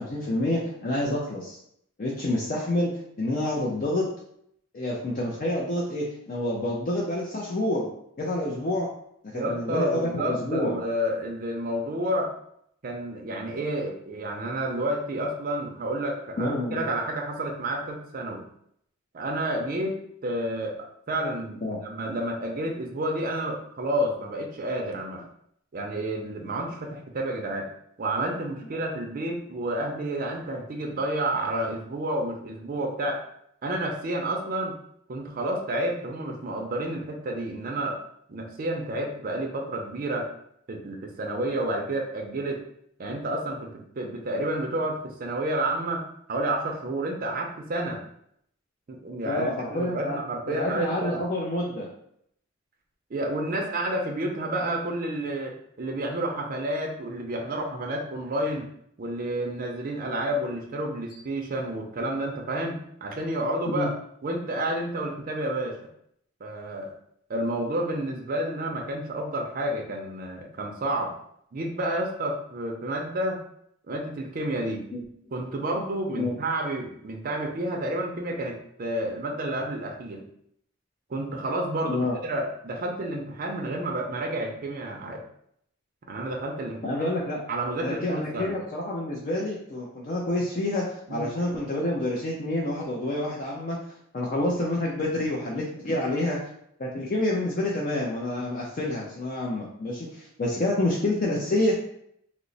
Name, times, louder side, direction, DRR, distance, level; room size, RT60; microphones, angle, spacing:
voice 1, 0.0-1.6 2.0-2.9 3.2-4.0 4.7-7.9 8.2-8.9 9.2-10.8 16.4-16.8 21.6-21.8 49.2-50.2 50.5-51.9 63.7-63.9 74.9-75.0 76.2-76.3 81.9-82.2 86.8-87.4 87.8-93.8 94.1-96.4 96.8-101.8, left 1 dB, 40° left, -3 dB, 0.5 m, -28 dB
voice 2, 9.3-12.3 12.8-18.5 19.1-25.3 25.7-27.7 28.0-33.2 33.6-34.7 35.1-38.0 38.3-40.3 40.7-42.6 43.0-46.0 46.3-48.0 48.9-51.2 53.1-58.7 59.0-63.9 64.2-65.8 66.4-66.9 67.3-71.1 71.5-73.4 73.9-74.9 75.3-80.2 81.1-85.2 86.1-87.2 87.5-88.5 91.1-91.3, right 1 dB, 45° right, 1 dB, 0.4 m, -30 dB
3.0 x 2.0 x 3.9 m, 0.71 s
head